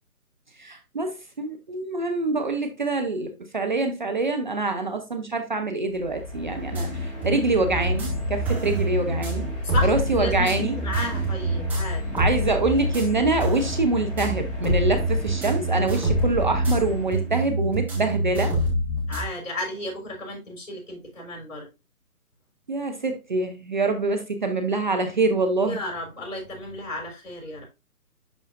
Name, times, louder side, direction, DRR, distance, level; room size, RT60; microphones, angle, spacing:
voice 1, 0.6-9.5 9.8-10.8 12.1-18.5 22.7-25.8, right 3 dB, 35° right, 0.6 m, -25 dB
sound 1, 5.9-17.6, left 1 dB, 25° left, 2.7 m, -34 dB
sound 2, 6.7-19.2, right 1 dB, 5° right, 1.4 m, -26 dB
voice 2, 9.6-12.1 19.1-21.7 25.7-27.7, left 1 dB, 55° left, 3.8 m, -33 dB
11.0 x 3.8 x 2.5 m
figure-of-eight pair, 145°, 44 cm